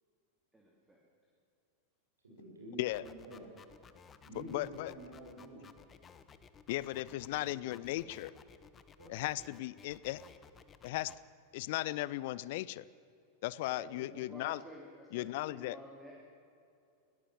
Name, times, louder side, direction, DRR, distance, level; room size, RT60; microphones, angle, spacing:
voice 1, 0.5-1.0 13.8-16.1, right 1 dB, 10° right, -2 dB, 3.3 m, -53 dB
voice 2, 2.2-3.4 4.2-5.7 7.0-8.1 9.0-9.2 13.6-14.1, equal, 75° right, -2 dB, 7.2 m, -50 dB
sound 1, 2.9-11.2, left 6 dB, 20° left, 1.1 m, -57 dB
voice 3, 4.5-4.9 6.7-8.3 9.1-10.3 10.8-11.2 11.5-12.9 13.4-14.6 15.1-15.8, left 17 dB, 50° left, 20 dB, 0.5 m, -36 dB
21.5 x 18.5 x 7.6 m, 2.6 s
figure-of-eight pair, 90°, 0 cm